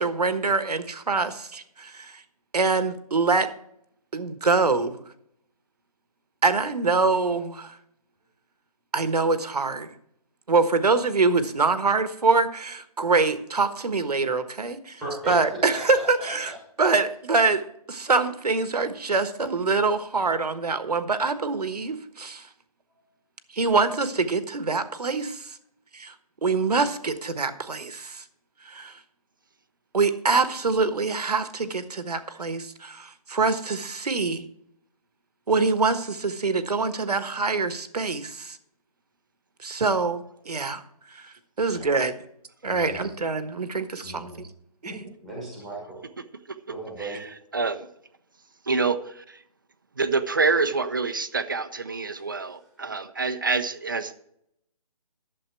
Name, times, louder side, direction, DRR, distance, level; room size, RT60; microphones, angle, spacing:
voice 1, 0.0-2.2 2.5-3.5 4.1-5.0 6.4-7.8 8.9-9.9 10.5-15.0 15.3-16.5 16.8-17.6 17.9-22.5 23.5-25.6 25.9-26.1 26.4-28.2 28.6-29.0 29.9-34.5 35.5-38.6 39.6-40.8 41.1-42.1 42.6-44.5 44.8-45.0, right 4 dB, 80° right, 10 dB, 1.4 m, -25 dB
voice 2, 14.9-15.8 41.6-41.9 42.6-43.0 44.0-44.4 44.8-46.0 46.7-47.2, right 2 dB, ahead, -3 dB, 1.4 m, -37 dB
voice 3, 47.0-47.9 48.6-49.4 50.0-54.1, right 4 dB, 35° right, 11 dB, 0.6 m, -27 dB
11.5 x 7.3 x 4.6 m, 0.73 s
hypercardioid pair, 175°, 20 cm